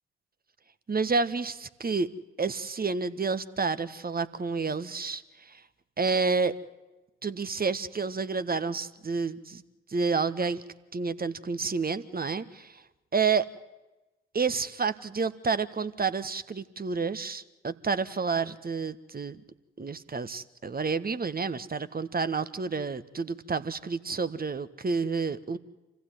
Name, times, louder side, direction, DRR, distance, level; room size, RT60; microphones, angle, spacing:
voice 1, 0.9-2.1 2.4-5.6 6.0-6.6 7.2-9.6 9.9-10.6 10.9-12.8 13.1-13.4 14.3-19.4 19.8-25.6, right 4 dB, 30° right, 13 dB, 1.5 m, -29 dB
27.5 x 15.5 x 9.2 m, 1.1 s
figure-of-eight pair, 40°, 31 cm